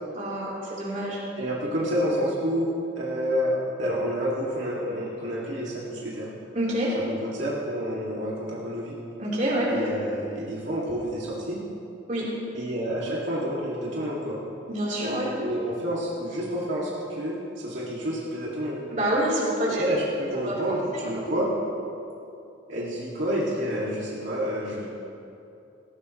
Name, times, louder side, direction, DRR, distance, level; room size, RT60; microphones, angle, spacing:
voice 1, 0.2-1.2 6.5-7.0 9.2-9.7 12.1-12.3 14.7-15.3 18.9-19.8 20.4-20.5 20.9-21.0, right 1 dB, 40° right, -7 dB, 4.2 m, -27 dB
voice 2, 1.4-6.3 6.9-9.0 9.7-11.6 12.5-14.4 15.0-18.8 19.7-21.5 22.7-24.9, equal, 75° right, -7 dB, 2.7 m, -29 dB
19.0 x 16.0 x 3.3 m, 2.7 s
head